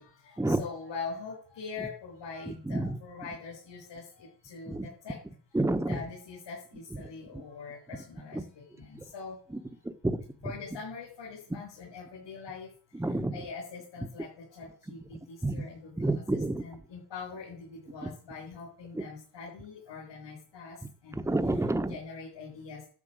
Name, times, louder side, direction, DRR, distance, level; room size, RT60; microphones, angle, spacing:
voice 1, 0.0-5.2 5.8-8.4 8.8-9.4 10.4-12.7 13.3-14.3 14.6-15.0 15.3-16.2 16.6-20.8 21.0-21.2 21.9-22.8, left 5 dB, 70° left, -4 dB, 6.8 m, -43 dB
voice 2, 5.5-6.0 8.3-8.4 10.0-10.2 12.9-13.3 15.4-15.6 16.0-16.6 21.2-21.9, right 2 dB, 5° right, 8 dB, 1.1 m, -28 dB
12.5 x 6.0 x 8.9 m, 0.42 s
cardioid pair, 130°, 45 cm